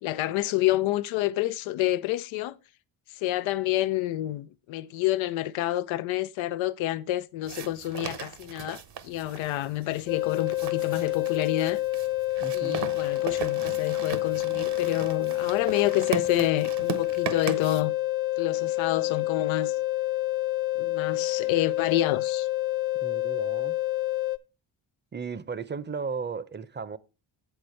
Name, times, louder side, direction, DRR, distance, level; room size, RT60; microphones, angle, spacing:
voice 1, 0.0-2.6 3.1-11.8 12.5-17.9 18.4-19.8 20.8-22.5, left 14 dB, 80° left, 0.6 m, -28 dB
sound 1, 7.4-17.8, right 8 dB, 60° right, 1.1 m, -38 dB
sound 2, 10.1-24.4, left 17 dB, 30° left, 0.5 m, -28 dB
voice 2, 12.4-12.9 23.0-23.8 25.1-27.0, right 5 dB, 25° right, 0.7 m, -35 dB
7.7 x 6.7 x 4.3 m
supercardioid pair, 65°, 46 cm